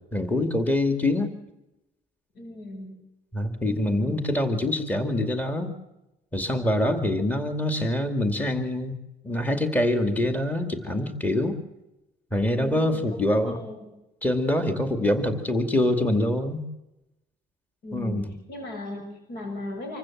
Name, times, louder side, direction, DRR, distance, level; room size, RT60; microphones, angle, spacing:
voice 1, 0.0-1.4 3.3-5.7 6.3-9.0 9.2-11.6 12.3-13.6 14.2-16.7 17.9-18.2, left 1 dB, 10° left, 7 dB, 2.3 m, -25 dB
voice 2, 2.3-3.0 3.6-4.1 7.2-7.3 12.5-13.9 17.8-20.0, left 1 dB, 70° left, 4 dB, 6.5 m, -37 dB
26.0 x 15.0 x 7.3 m, 0.95 s
cardioid pair, 110°, 17 cm